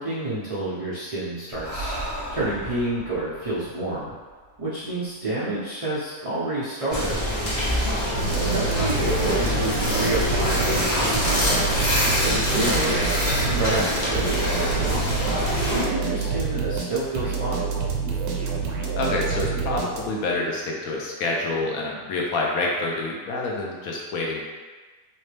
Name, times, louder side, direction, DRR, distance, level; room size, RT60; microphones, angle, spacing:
voice 1, 0.0-4.1 4.6-7.3 8.0-11.6 12.2-13.1 13.4-15.1 15.7-17.7, right 2 dB, 55° right, -9 dB, 0.4 m, -29 dB
Breathing, 1.5-5.1, right 1 dB, 50° left, 1.2 m, -36 dB
sound 1, 6.9-15.8, equal, 35° left, 0.9 m, -24 dB
sound 2, 8.2-20.3, right 5 dB, 80° right, 1.1 m, -27 dB
voice 2, 19.0-24.4, left 2 dB, 70° left, -2 dB, 1.1 m, -27 dB
3.1 x 2.9 x 3.2 m, 1.3 s
omnidirectional pair, 1.6 m